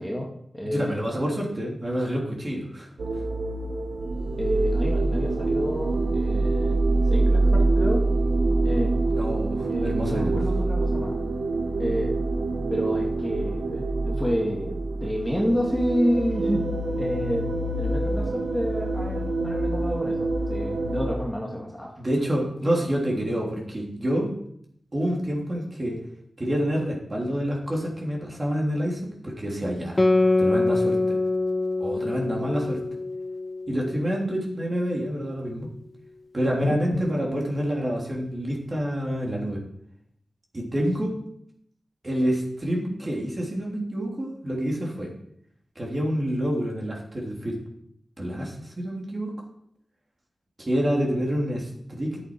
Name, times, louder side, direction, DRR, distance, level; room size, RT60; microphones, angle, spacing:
voice 1, 0.0-1.1 4.3-6.8 7.1-8.0 8.6-8.9 9.7-11.2 11.8-12.2 12.7-16.7 16.9-17.5 17.8-21.9 22.6-22.7 36.6-37.0, equal, 5° left, -2 dB, 2.2 m, -29 dB
voice 2, 0.6-2.9 9.1-10.4 22.0-24.3 24.9-26.0 26.4-30.0 30.4-31.2 31.8-32.8 33.7-35.7 36.3-39.6 40.5-41.2 42.0-45.1 45.7-47.6 48.2-49.3 50.6-52.2, equal, 35° right, -2 dB, 3.2 m, -27 dB
sound 1, 3.0-21.2, right 2 dB, 85° right, 1.3 m, -25 dB
Guitar, 30.0-34.9, left 2 dB, 25° left, 0.7 m, -25 dB
11.5 x 8.3 x 4.7 m, 0.69 s
wide cardioid pair, 95°, 0 cm